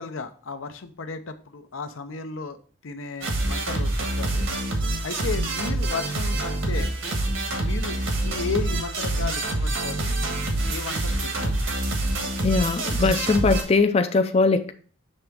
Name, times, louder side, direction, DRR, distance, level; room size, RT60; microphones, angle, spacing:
voice 1, 0.0-4.5 5.0-6.9 7.6-10.1 10.7-11.7, left 4 dB, 85° left, 9 dB, 0.7 m, -34 dB
sound 1, 3.2-13.6, right 2 dB, 75° right, 1.7 m, -26 dB
voice 2, 12.4-14.7, left 3 dB, 30° left, 7 dB, 0.4 m, -21 dB
6.5 x 3.4 x 6.0 m, 0.42 s
head